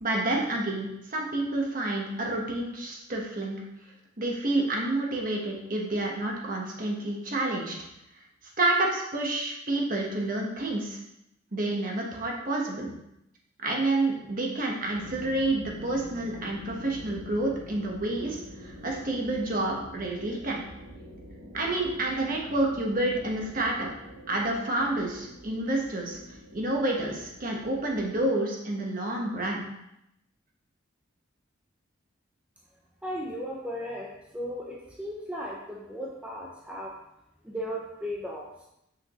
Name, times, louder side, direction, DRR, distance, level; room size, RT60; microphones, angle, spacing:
voice 1, 0.0-3.6 4.2-7.7 8.6-11.0 11.5-12.9 13.6-20.6 21.5-23.9 24.3-26.2 26.5-29.6, right 2 dB, 45° right, -1 dB, 1.3 m, -29 dB
sound 1, 14.9-28.1, left 1 dB, 60° right, 2.2 m, -46 dB
voice 2, 33.0-37.0 37.4-38.7, equal, 5° right, -3 dB, 0.7 m, -36 dB
7.7 x 6.3 x 3.1 m, 0.83 s
head